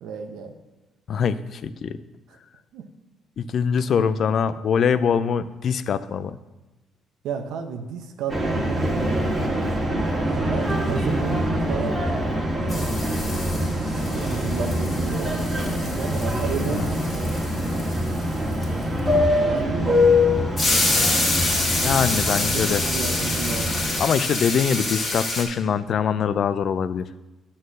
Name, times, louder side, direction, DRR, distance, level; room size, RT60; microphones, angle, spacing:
voice 1, 0.0-0.5 2.3-2.4 2.7-2.8 7.2-8.9 10.3-12.0 12.7-13.0 13.9-17.3 19.2-20.4 22.5-23.8, right 6 dB, 80° right, 5 dB, 0.8 m, -32 dB
voice 2, 1.1-2.0 3.4-6.4 16.7-16.9 21.8-22.8 24.0-27.1, left 7 dB, 50° left, 14 dB, 0.4 m, -23 dB
sound 1, 8.3-24.0, left 1 dB, 20° right, 1.6 m, -24 dB
sound 2, 12.0-12.4 12.7-19.0 20.6-25.4, left 2 dB, 30° left, 1.9 m, -27 dB
9.3 x 4.3 x 6.4 m, 1.1 s
cardioid pair, 125°, 0 cm